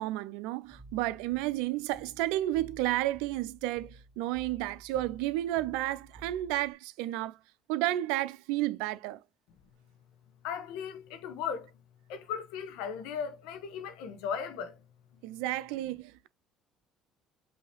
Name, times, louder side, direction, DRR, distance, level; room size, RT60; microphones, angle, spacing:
voice 1, 0.0-7.4 7.7-9.2 15.2-16.3, right 15 dB, 85° right, 0.5 m, -32 dB
sound 1, 0.6-6.7, right 2 dB, 25° right, 1.9 m, -53 dB
voice 2, 10.4-11.7 12.1-14.8, left 7 dB, 80° left, 0.9 m, -37 dB
5.4 x 2.8 x 3.3 m
supercardioid pair, 85°, 0 cm